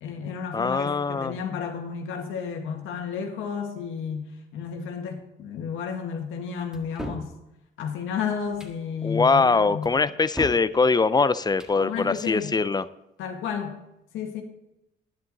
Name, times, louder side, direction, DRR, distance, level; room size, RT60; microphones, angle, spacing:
voice 1, 0.0-4.3 4.5-7.3 7.8-9.9 11.8-12.5 13.2-13.8 14.1-14.4, left 6 dB, 85° left, 3 dB, 1.8 m, -32 dB
voice 2, 0.5-1.4 9.0-12.9, left 4 dB, 20° left, 16 dB, 0.5 m, -22 dB
sound 1, 6.7-7.3 8.4-8.8 9.8-10.7 11.4-11.8, equal, 5° right, 1.6 m, -37 dB
10.5 x 10.5 x 4.0 m, 0.89 s
cardioid pair, 90°, 20 cm